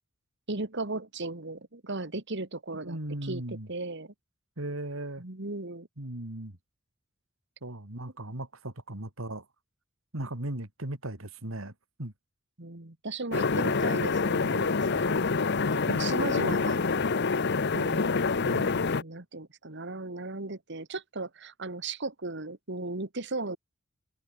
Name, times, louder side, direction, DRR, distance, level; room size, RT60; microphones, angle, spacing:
voice 1, 0.5-4.1 5.2-5.9 8.3-8.4 12.6-15.2 15.7-16.8 17.7-18.2 19.0-23.6, right 3 dB, 60° right, 2.1 m, -36 dB
voice 2, 2.8-3.7 4.6-5.2 6.0-6.6 7.6-9.5 10.1-11.7 12.0-12.1 18.4-18.8, right 1 dB, 85° right, 3.4 m, -37 dB
sound 1, 13.3-19.0, left 4 dB, 55° left, 0.8 m, -26 dB
head